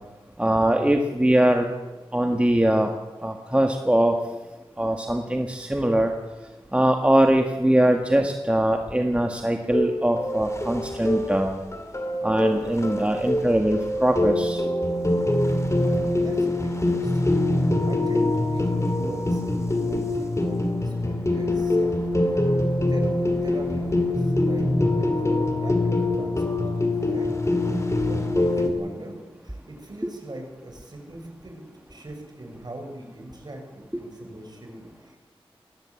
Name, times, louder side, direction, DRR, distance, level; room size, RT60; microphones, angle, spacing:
voice 1, 0.4-1.7 2.1-2.9 3.2-4.1 4.8-6.1 6.7-11.6 12.2-14.6, right 1 dB, 10° right, 4 dB, 1.7 m, -22 dB
sound 1, 9.7-28.7, left 1 dB, 30° left, 2.8 m, -24 dB
voice 2, 15.5-17.4 17.8-22.0 22.9-27.3 28.0-29.2 29.4-35.2, right 1 dB, 45° right, 3 dB, 6.6 m, -41 dB
20.5 x 17.5 x 8.4 m, 1.1 s
wide cardioid pair, 70°, 10 cm